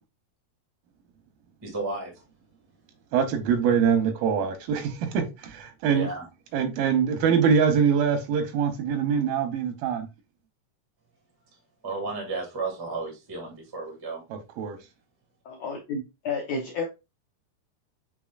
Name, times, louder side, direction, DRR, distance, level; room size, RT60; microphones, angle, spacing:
voice 1, 1.6-2.2 5.9-6.2 11.8-14.2, right 3 dB, 30° right, 0.4 m, -33 dB
voice 2, 3.1-5.2 5.8-6.1 6.5-10.1 14.6-14.8, right 7 dB, 90° right, 2.6 m, -23 dB
voice 3, 15.4-16.8, left 4 dB, 75° left, 1.6 m, -31 dB
6.1 x 3.7 x 2.4 m
omnidirectional pair, 4.0 m